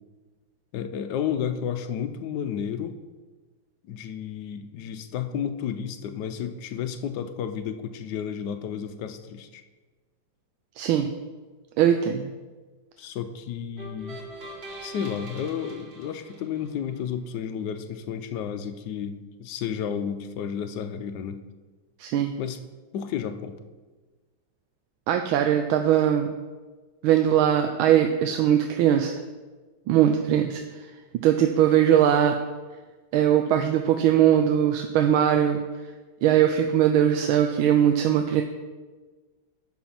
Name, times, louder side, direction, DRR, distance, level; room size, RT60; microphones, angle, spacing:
voice 1, 0.7-3.0 3.8-9.6 13.0-14.2 14.8-21.4 22.4-22.6 22.9-23.6, left 8 dB, 70° left, 7 dB, 1.2 m, -32 dB
voice 2, 10.8-11.1 11.8-12.3 22.0-22.3 25.1-26.3 27.0-29.1 29.9-30.6 31.2-32.3 33.1-35.6 36.2-38.4, right 10 dB, 90° right, 5 dB, 1.4 m, -20 dB
sound 1, 13.8-17.0, right 2 dB, 50° right, 2.2 m, -42 dB
12.0 x 4.3 x 5.6 m, 1.3 s
omnidirectional pair, 2.2 m